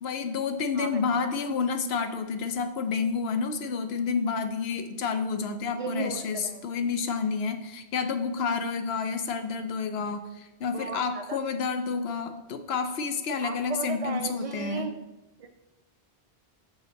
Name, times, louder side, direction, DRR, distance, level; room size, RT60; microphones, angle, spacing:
voice 1, 0.0-14.9, left 5 dB, 80° left, 8 dB, 0.9 m, -29 dB
voice 2, 0.7-1.2 5.7-6.8 10.7-11.4 13.4-14.9 15.4-15.5, right 5 dB, 55° right, 7 dB, 0.4 m, -36 dB
6.4 x 5.1 x 3.9 m, 1.1 s
omnidirectional pair, 1.1 m